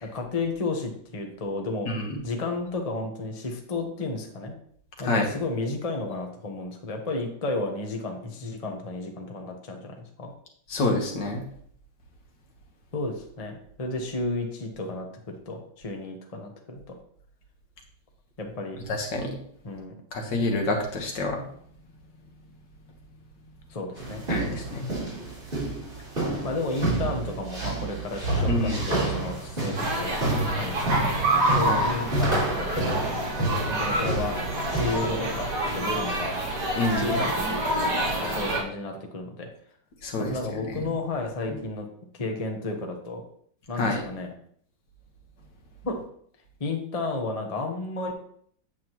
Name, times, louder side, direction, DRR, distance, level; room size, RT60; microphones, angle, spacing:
voice 1, 0.0-1.9 2.2-4.5 5.0-10.3 12.9-17.0 18.4-18.8 19.6-19.9 23.7-24.2 26.4-30.1 30.6-31.1 31.5-33.0 33.7-34.4 34.7-36.3 36.9-39.5 40.2-41.9 42.1-43.2 43.7-44.3 45.8-46.0 46.6-48.1, left 2 dB, 30° left, 3 dB, 0.8 m, -32 dB
voice 2, 1.9-2.2 5.0-5.3 10.7-11.4 18.9-19.4 20.1-21.4 24.3-24.9 28.5-28.9 31.7-31.9 36.8-37.2 40.0-40.9 43.8-44.0, left 2 dB, 65° left, 2 dB, 2.0 m, -27 dB
sound 1, 24.0-35.2, right 2 dB, 25° right, 3.4 m, -29 dB
sound 2, 29.7-38.6, right 1 dB, 55° right, 2.3 m, -27 dB
8.4 x 7.7 x 3.0 m, 0.63 s
omnidirectional pair, 2.1 m